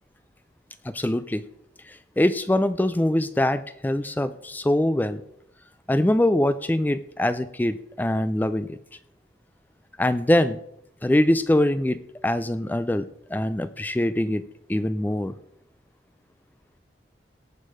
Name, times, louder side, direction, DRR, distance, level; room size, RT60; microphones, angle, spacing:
voice 1, 0.8-1.4 1.9-5.2 5.9-8.8 10.0-10.6 11.0-13.1 13.3-14.4 14.7-15.3, left 1 dB, 10° left, 13 dB, 0.3 m, -23 dB
17.5 x 6.3 x 4.9 m, 0.78 s
head